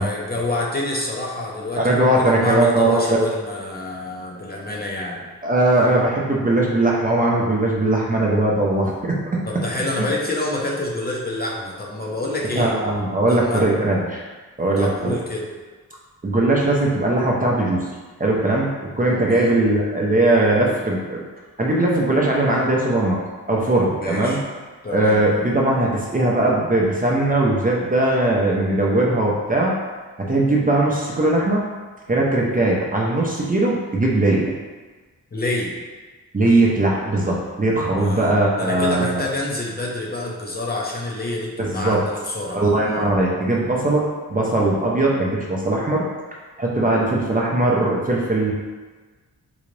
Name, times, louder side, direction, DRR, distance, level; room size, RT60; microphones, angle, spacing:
voice 1, 0.0-5.3 9.5-12.7 13.3-13.6 14.8-15.5 19.2-19.5 23.9-24.4 24.8-25.2 35.3-35.7 38.0-43.1, left 2 dB, 25° left, -3 dB, 0.7 m, -27 dB
voice 2, 1.8-3.2 5.4-9.4 10.0-10.1 12.5-14.2 14.6-15.2 16.2-17.9 18.2-18.7 19.0-21.2 21.6-23.2 23.5-24.4 24.9-29.8 30.2-31.7 32.1-34.5 36.3-39.3 41.6-42.0 42.5-46.1 46.6-48.5, right 2 dB, 20° right, -3 dB, 0.7 m, -19 dB
3.9 x 2.4 x 3.2 m, 1.4 s
cardioid pair, 60°, 38 cm